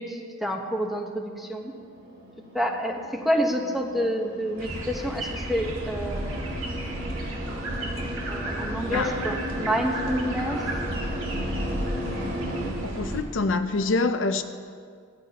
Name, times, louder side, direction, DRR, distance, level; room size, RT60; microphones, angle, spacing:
voice 1, 0.0-1.7 2.5-6.5 8.2-10.6, equal, ahead, 1.1 m, -28 dB
sound 1, 1.1-12.7, equal, 55° right, 2.5 m, -36 dB
sound 2, 4.6-13.2, right 1 dB, 85° right, 2.1 m, -33 dB
voice 2, 8.9-9.2 12.8-14.4, left 3 dB, 65° left, 0.6 m, -26 dB
18.0 x 13.5 x 3.0 m
head